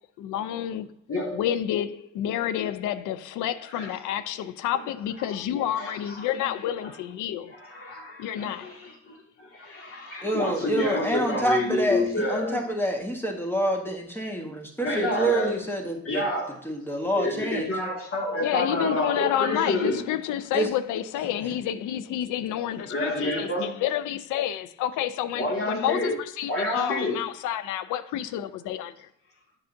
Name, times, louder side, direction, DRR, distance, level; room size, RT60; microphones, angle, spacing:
voice 1, 0.2-0.9 1.3-7.5 8.2-8.7 18.4-26.1 26.4-29.1, left 11 dB, 85° left, 0.5 m, -29 dB
voice 2, 1.1-1.4 3.7-3.9 4.7-4.8 5.2-6.3 6.8-7.0 7.4-12.6 14.8-15.6 16.0-16.6 17.2-20.0 22.8-23.8 25.3-26.2 26.5-27.2, left 1 dB, 45° left, 2.1 m, -29 dB
voice 3, 10.2-16.2 16.6-17.7 20.5-20.7, right 1 dB, 5° left, 1.5 m, -27 dB
7.9 x 5.6 x 2.6 m
cardioid pair, 90°, 30 cm